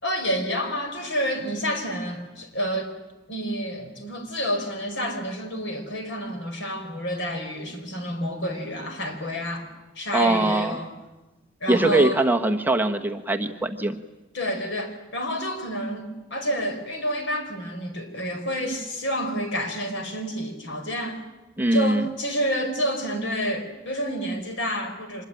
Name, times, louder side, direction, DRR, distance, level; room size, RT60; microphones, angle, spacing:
voice 1, 0.0-2.9 3.3-9.7 9.9-10.9 11.6-12.2 14.3-21.2 21.7-25.2, equal, 65° left, 6 dB, 5.0 m, -29 dB
voice 2, 10.1-10.8 11.7-14.0 21.6-22.1, right 2 dB, 10° right, 4 dB, 1.2 m, -22 dB
25.5 x 21.5 x 9.2 m, 1.1 s
head